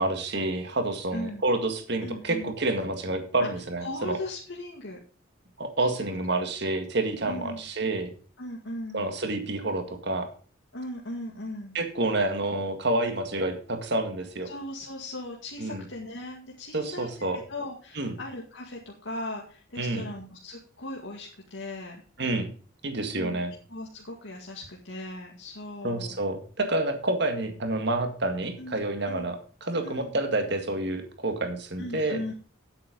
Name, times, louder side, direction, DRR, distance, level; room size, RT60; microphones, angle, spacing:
voice 1, 0.0-4.2 5.6-8.1 8.9-10.3 11.7-14.5 15.6-15.8 16.7-17.4 18.0-18.1 19.8-20.1 22.2-22.5 22.8-23.5 25.8-32.3, right 2 dB, 55° right, 6 dB, 2.0 m, -28 dB
voice 2, 1.1-1.4 2.0-2.5 3.8-5.0 5.8-6.0 7.2-7.6 8.4-9.0 10.7-11.7 14.4-22.0 23.2-23.4 23.7-26.2 28.6-29.3 29.8-30.1 31.8-32.3, left 1 dB, 70° left, -2 dB, 2.0 m, -38 dB
9.5 x 8.6 x 5.3 m, 0.40 s
head